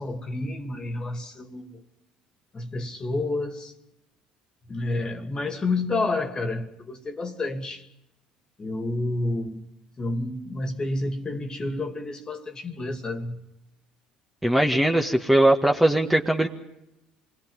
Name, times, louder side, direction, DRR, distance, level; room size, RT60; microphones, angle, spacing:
voice 1, 0.0-1.8 2.5-3.7 4.7-7.9 8.6-9.6 10.0-13.4, left 2 dB, 30° left, 2.6 m, -30 dB
voice 2, 14.4-16.5, right 1 dB, 5° right, 1.8 m, -20 dB
27.0 x 21.5 x 5.6 m
hypercardioid pair, 60°, 3 cm